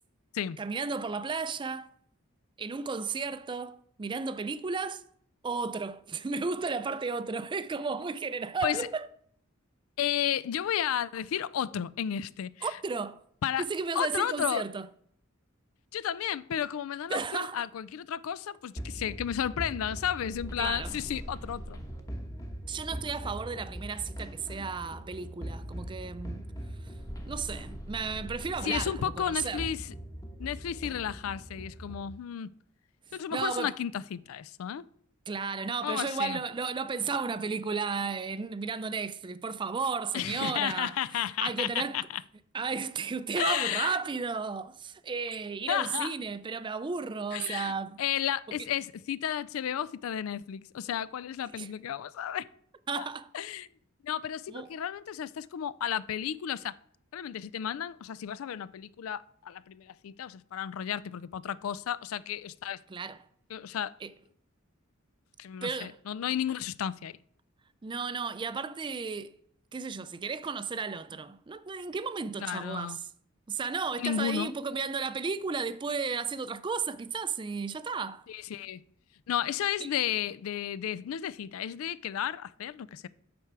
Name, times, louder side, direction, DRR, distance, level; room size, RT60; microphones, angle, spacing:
voice 1, 0.6-1.9 2.6-5.0 5.4-9.1 12.6-13.2 13.6-14.9 17.1-17.6 20.6-20.9 22.7-26.4 27.3-29.7 33.3-33.8 35.3-40.9 41.4-42.1 42.5-48.0 51.6-51.7 52.9-53.3 54.5-54.8 62.9-63.2 64.0-64.1 65.6-66.0 67.8-69.3 69.7-73.0 73.5-78.2 79.8-79.9, right 5 dB, 25° right, 0.4 m, -34 dB
voice 2, 10.0-12.8 13.4-13.6 13.9-14.6 15.9-21.8 28.6-29.9 30.4-32.5 33.1-34.8 35.8-36.4 40.1-42.2 43.4-44.0 45.7-46.1 47.3-47.7 48.0-52.5 53.0-53.1 53.3-53.7 54.0-56.8 57.1-62.8 63.5-63.9 65.4-67.1 72.4-73.0 74.0-74.5 78.3-78.8 79.3-83.1, left 9 dB, 80° left, 0.4 m, -33 dB
sound 1, 18.8-32.1, equal, 15° left, 1.1 m, -41 dB
8.7 x 6.1 x 4.6 m
head